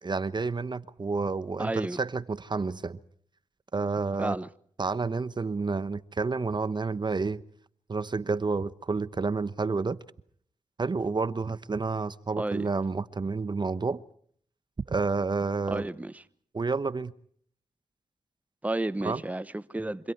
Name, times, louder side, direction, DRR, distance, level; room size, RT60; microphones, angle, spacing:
voice 1, 0.0-3.0 3.7-4.4 4.8-7.4 7.9-10.0 10.8-14.0 14.9-15.8 16.5-17.1 19.0-19.2, right 4 dB, 40° right, 1.0 m, -29 dB
voice 2, 1.6-2.0 4.2-4.5 12.4-12.7 15.7-16.2 18.6-20.1, right 2 dB, 10° right, 0.9 m, -32 dB
27.0 x 25.5 x 4.7 m
cardioid pair, 50°, 12 cm